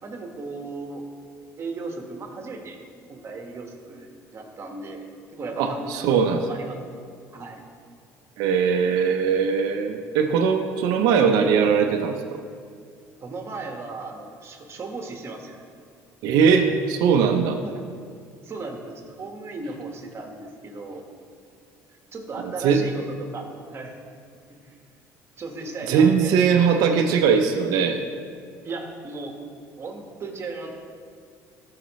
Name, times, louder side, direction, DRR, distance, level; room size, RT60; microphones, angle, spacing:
voice 1, 0.0-1.0 1.6-2.8 3.1-6.8 7.3-7.6 13.2-15.6 17.6-17.8 18.4-21.0 22.1-24.0 24.5-24.8 25.4-26.9 28.6-29.3 29.8-30.7, right 3 dB, 40° right, 2 dB, 1.5 m, -36 dB
voice 2, 5.6-6.4 8.4-12.1 16.2-17.6 22.6-22.8 25.9-28.0, right 6 dB, 75° right, 4 dB, 0.7 m, -20 dB
14.0 x 5.8 x 3.2 m, 2.2 s
supercardioid pair, 90°, 7 cm